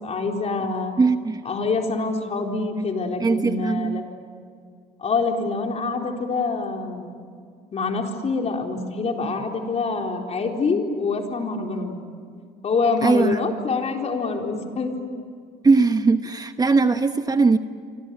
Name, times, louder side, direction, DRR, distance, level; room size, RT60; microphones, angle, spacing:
voice 1, 0.0-1.0 1.4-4.0 5.0-7.2 7.7-12.0 12.6-14.9, left 4 dB, 40° left, 2 dB, 4.2 m, -25 dB
voice 2, 1.0-1.4 3.2-4.1 13.0-13.4 15.6-17.6, right 4 dB, 20° right, 8 dB, 1.0 m, -19 dB
28.0 x 25.0 x 8.4 m, 2.2 s
cardioid pair, 110°, 17 cm